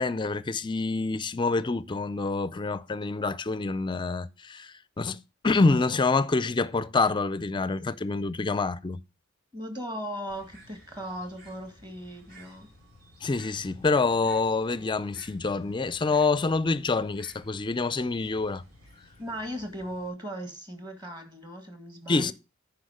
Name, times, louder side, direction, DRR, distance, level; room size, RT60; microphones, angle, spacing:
voice 1, 0.0-9.0 13.2-18.6 22.1-22.3, left 3 dB, 25° left, 0.4 m, -27 dB
voice 2, 9.5-12.7 19.2-22.3, equal, 20° right, 1.9 m, -37 dB
Bird, 10.3-20.1, equal, 55° right, 4.1 m, -54 dB
10.0 x 4.8 x 4.8 m
head